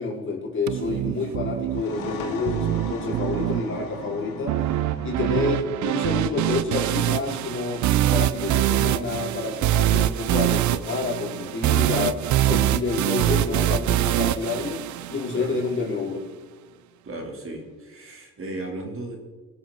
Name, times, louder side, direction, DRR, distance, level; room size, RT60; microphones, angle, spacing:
voice 1, 0.0-4.6 5.0-7.9 8.1-14.8 15.1-16.2, left 3 dB, 40° left, -3 dB, 4.1 m, -28 dB
sound 1, 0.7-15.7, right 13 dB, 70° right, 0.6 m, -24 dB
sound 2, 1.6-9.0, left 4 dB, 90° left, 1.9 m, -40 dB
voice 2, 17.0-19.2, right 2 dB, 45° right, 1 dB, 2.8 m, -35 dB
19.5 x 7.3 x 3.7 m, 1.4 s
cardioid pair, 90°, 30 cm